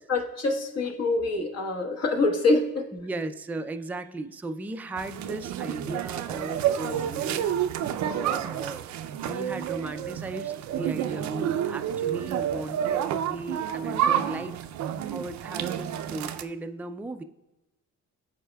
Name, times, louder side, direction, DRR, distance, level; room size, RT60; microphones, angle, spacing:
voice 1, 0.1-2.8, left 3 dB, 55° left, 1 dB, 1.3 m, -25 dB
voice 2, 2.9-7.5 8.1-14.6 15.1-17.2, right 2 dB, 5° right, 7 dB, 0.3 m, -36 dB
sound 1, 5.0-16.4, right 10 dB, 65° right, 0.5 m, -29 dB
12.0 x 4.2 x 2.2 m, 0.98 s
cardioid pair, 90°, 30 cm